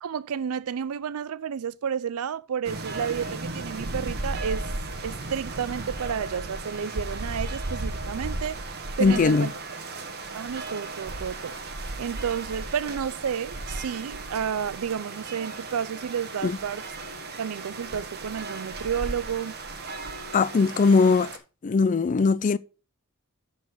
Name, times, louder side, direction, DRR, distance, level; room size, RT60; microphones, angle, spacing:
voice 1, 0.0-4.7 5.0-8.6 9.0-9.5 10.3-11.5 12.0-16.8 17.4-19.6, right 7 dB, 75° right, 0.4 m, -31 dB
sound 1, 2.6-21.4, right 2 dB, 45° right, 1.1 m, -35 dB
voice 2, 9.0-9.5 16.4-16.6 20.3-21.3 21.6-22.6, left 4 dB, 35° left, 0.3 m, -20 dB
11.5 x 4.1 x 4.7 m
head